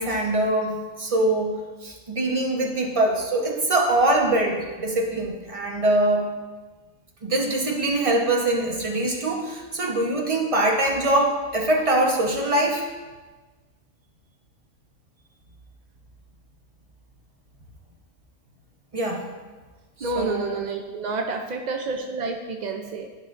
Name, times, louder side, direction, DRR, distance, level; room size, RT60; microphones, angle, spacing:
voice 1, 0.0-6.3 7.2-12.8 18.9-19.2 20.0-20.6, right 1 dB, 30° right, 0 dB, 0.9 m, -23 dB
voice 2, 20.0-23.1, right 3 dB, 65° right, 3 dB, 0.4 m, -29 dB
12.0 x 5.5 x 2.5 m, 1.3 s
omnidirectional pair, 1.3 m